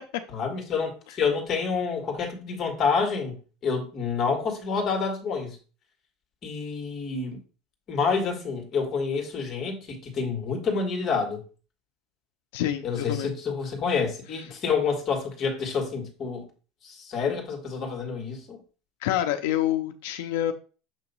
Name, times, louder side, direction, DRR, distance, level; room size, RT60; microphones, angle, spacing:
voice 1, 0.3-3.4 3.6-5.6 6.4-7.4 7.9-11.4 12.8-16.5 16.8-18.6, left 5 dB, 30° left, 1.7 m, -28 dB
voice 2, 12.5-13.3 19.0-20.5, left 12 dB, 85° left, 0.6 m, -27 dB
7.0 x 2.9 x 5.4 m
cardioid pair, 175°, 0 cm